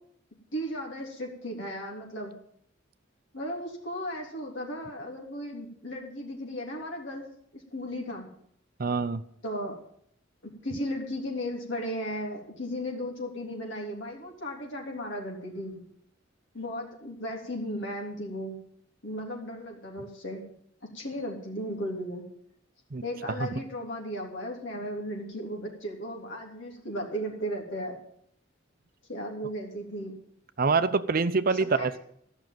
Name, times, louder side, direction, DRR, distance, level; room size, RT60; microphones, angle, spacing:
voice 1, 0.5-2.3 3.3-7.3 7.5-8.3 9.4-9.8 10.4-15.8 16.5-18.6 19.0-20.4 20.9-22.2 23.0-28.0 29.1-30.1 31.6-32.0, equal, 65° left, -1 dB, 3.4 m, -35 dB
voice 2, 8.8-9.2 22.9-23.0 23.4-23.5 30.6-32.0, right 4 dB, 50° right, 12 dB, 0.6 m, -25 dB
14.5 x 6.3 x 9.2 m, 0.68 s
head